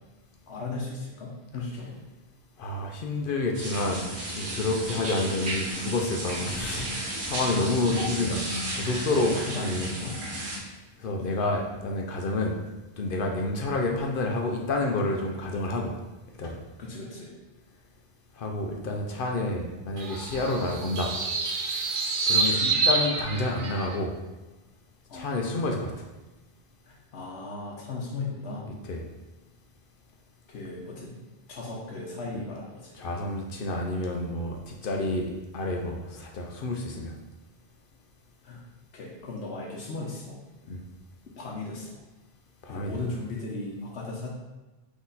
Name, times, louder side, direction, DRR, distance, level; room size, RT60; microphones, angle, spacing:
voice 1, 0.5-2.0 7.5-7.6 8.0-8.1 8.8-9.1 9.4-10.2 16.8-17.3 22.5-22.8 25.1-25.3 26.8-28.6 30.5-31.2 31.5-32.9 38.4-38.6 38.9-40.4 41.4-42.0 42.7-44.3, left 3 dB, 85° left, -3 dB, 1.0 m, -37 dB
voice 2, 2.6-8.4 8.7-9.9 11.0-12.6 13.0-15.9 16.4-16.6 18.4-21.1 22.3-24.1 25.1-25.9 28.9-29.0 32.3-32.4 33.0-35.3 35.5-37.1 40.7-40.8 42.6-43.0, left 2 dB, 60° left, 1 dB, 0.7 m, -29 dB
sound 1, 3.5-10.6, right 1 dB, 75° right, 1.2 m, -33 dB
sound 2, 20.0-24.0, right 3 dB, 60° right, 0.7 m, -27 dB
4.1 x 3.0 x 3.9 m, 1.1 s
omnidirectional pair, 1.1 m